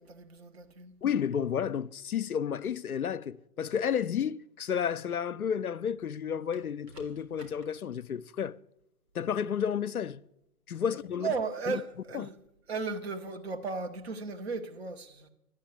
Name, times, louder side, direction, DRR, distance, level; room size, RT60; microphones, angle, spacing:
voice 1, 0.0-0.9 10.9-12.4 12.7-15.3, right 4 dB, 40° right, 1.3 m, -36 dB
voice 2, 1.0-8.6 9.1-10.2 10.7-11.3 11.7-11.8 12.1-12.3, left 8 dB, 65° left, 0.6 m, -31 dB
sound 1, 5.5-6.1 6.5-7.7 9.5-9.7, right 2 dB, 85° right, 3.9 m, -55 dB
13.0 x 9.4 x 8.3 m
figure-of-eight pair, 145°, 47 cm